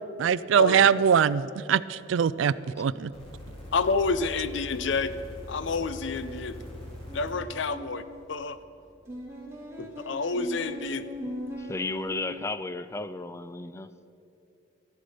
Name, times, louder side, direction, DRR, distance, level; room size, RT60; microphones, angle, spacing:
voice 1, 0.0-3.1, right 7 dB, 75° right, 18 dB, 0.3 m, -23 dB
voice 2, 2.4-2.8 11.6-13.9, left 2 dB, 15° left, 13 dB, 0.3 m, -34 dB
sound 1, 3.1-7.4 8.3-8.4, left 1 dB, 30° left, 2.3 m, -42 dB
voice 3, 3.7-5.1 5.5-6.6 7.1-8.0 8.3-8.6 9.8-11.0, left 4 dB, 70° left, 13 dB, 0.6 m, -28 dB
sound 2, 7.1-8.1 9.1-12.1, equal, 15° right, 2.4 m, -40 dB
14.0 x 12.0 x 5.0 m, 2.7 s
head